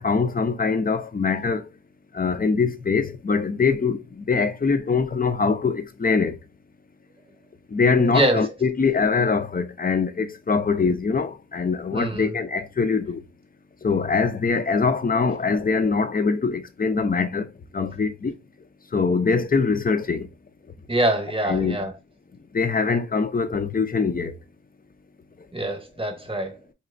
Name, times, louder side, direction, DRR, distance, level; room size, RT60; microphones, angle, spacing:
voice 1, 0.0-1.6 2.1-6.3 7.7-13.2 13.8-17.5 17.7-18.3 18.9-20.3 21.5-21.8 22.5-24.3, left 4 dB, 30° left, 0.4 m, -23 dB
voice 2, 8.1-8.5 11.9-12.3 20.9-21.9 25.5-26.6, right 1 dB, 15° right, 0.9 m, -24 dB
4.2 x 2.9 x 2.5 m
wide cardioid pair, 60°, 32 cm